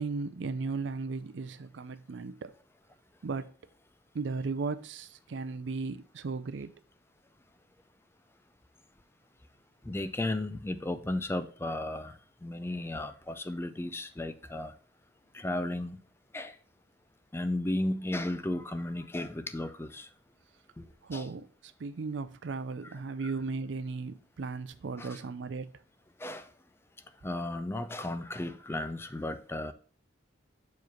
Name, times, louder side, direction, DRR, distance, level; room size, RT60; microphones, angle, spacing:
voice 1, 0.0-2.5 3.2-3.5 4.1-6.7 21.0-21.5 21.8-25.7, right 4 dB, 70° right, 0.5 m, -36 dB
voice 2, 9.8-12.1 12.4-14.7 15.3-16.0 16.3-16.6 17.3-20.1 20.8-20.9 21.1-21.3 22.8-22.9 25.0-25.2 26.2-26.5 27.2-29.7, left 1 dB, 15° left, 0.4 m, -34 dB
7.1 x 3.1 x 5.7 m
head